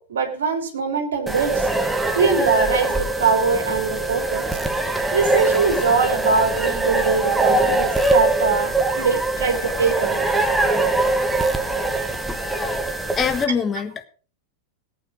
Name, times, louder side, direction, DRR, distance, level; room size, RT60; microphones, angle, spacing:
voice 1, 0.0-1.7 2.2-4.5 4.9-10.2, right 5 dB, 65° right, 6 dB, 3.6 m, -22 dB
sound 1, 1.3-13.4, right 2 dB, 5° right, 1.8 m, -22 dB
voice 2, 13.2-14.0, left 6 dB, 20° left, 9 dB, 1.5 m, -23 dB
18.0 x 9.1 x 5.2 m, 0.38 s
figure-of-eight pair, 90°, 0 cm